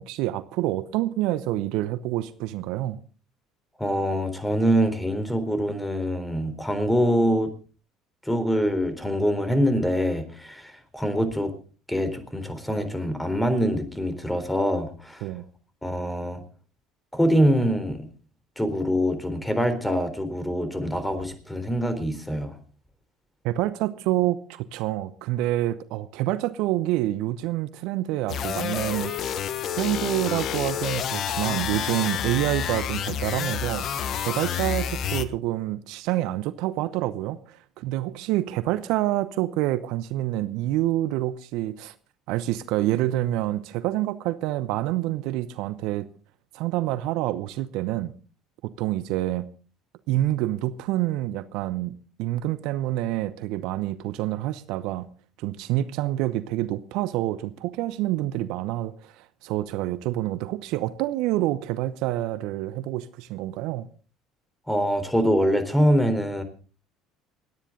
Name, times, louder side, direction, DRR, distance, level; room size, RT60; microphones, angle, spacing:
voice 1, 0.0-3.0 15.2-15.4 23.4-29.1 29.7-41.9 42.3-46.1 46.5-48.1 48.6-49.5 50.1-55.1 55.4-63.9, right 15 dB, 65° right, 15 dB, 0.8 m, -27 dB
voice 2, 3.8-7.5 8.2-11.5 11.9-15.3 15.8-16.4 17.1-18.1 18.6-22.6 64.7-66.4, equal, 5° left, 10 dB, 3.9 m, -24 dB
sound 1, 28.3-35.3, left 9 dB, 50° left, 1.2 m, -29 dB
28.5 x 9.9 x 3.9 m, 0.38 s
hypercardioid pair, 65°, 0 cm